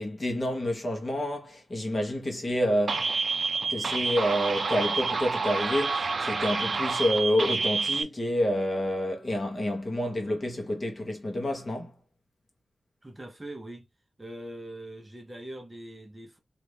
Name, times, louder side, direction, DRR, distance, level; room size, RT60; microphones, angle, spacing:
voice 1, 0.0-3.2 3.7-11.9, equal, 35° left, 1.2 m, -28 dB
sound 1, 2.9-8.0, right 4 dB, 55° right, 0.4 m, -28 dB
voice 2, 13.0-13.9 14.2-16.4, right 1 dB, 20° right, 0.8 m, -42 dB
2.7 x 2.6 x 3.2 m
wide cardioid pair, 120°, 0 cm